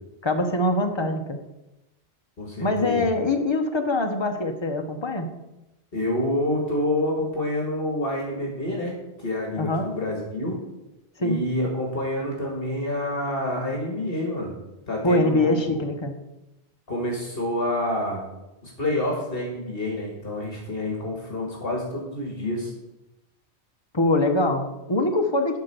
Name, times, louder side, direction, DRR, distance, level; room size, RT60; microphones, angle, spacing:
voice 1, 0.2-1.4 2.6-5.3 9.6-9.9 11.2-11.4 15.0-16.1 23.9-25.6, left 2 dB, 25° left, 5 dB, 1.0 m, -23 dB
voice 2, 2.4-3.1 5.9-10.6 11.2-14.5 14.9-15.8 16.9-18.2 18.6-22.7, left 1 dB, 60° left, -1 dB, 2.0 m, -28 dB
10.5 x 4.4 x 6.9 m, 0.96 s
omnidirectional pair, 1.1 m